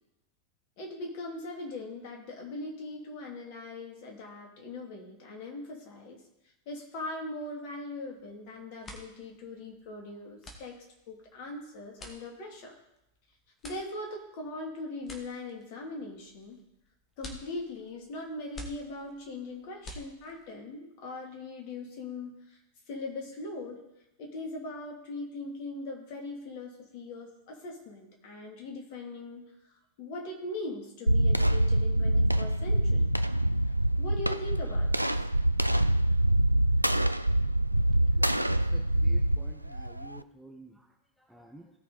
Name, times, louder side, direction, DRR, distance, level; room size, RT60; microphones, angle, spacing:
voice 1, 0.8-6.2 6.7-10.8 11.1-12.7 13.6-16.6 17.2-22.6 22.9-23.8 24.2-29.4 30.0-33.0 34.0-35.3, left 2 dB, 45° left, 0 dB, 3.0 m, -40 dB
sound 1, 8.1-8.4 8.7-20.6, left 1 dB, 20° left, 2.0 m, -49 dB
sound 2, 31.1-40.2, right 1 dB, 90° right, 0.3 m, -25 dB
voice 2, 37.9-41.7, right 1 dB, ahead, 0 dB, 1.3 m, -52 dB
17.0 x 6.0 x 4.2 m, 0.87 s
figure-of-eight pair, 90°, 0 cm